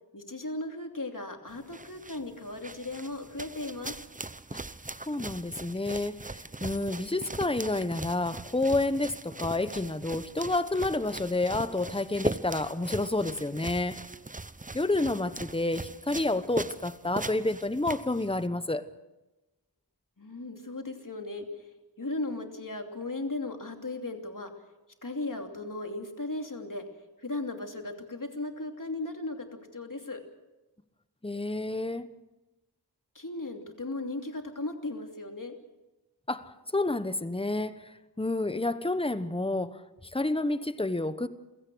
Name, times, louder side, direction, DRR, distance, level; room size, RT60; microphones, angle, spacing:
voice 1, 0.1-4.0 20.2-21.7 22.0-24.5 25.0-26.8 27.2-29.5 29.7-30.2 33.1-35.6, left 2 dB, 50° left, 2.9 m, -36 dB
sound 1, 1.5-18.5, right 2 dB, 20° right, 0.8 m, -40 dB
voice 2, 5.1-14.0 14.7-18.9 31.2-32.1 36.3-41.3, left 2 dB, 15° left, 1.1 m, -29 dB
28.0 x 16.5 x 6.3 m
wide cardioid pair, 50°, 41 cm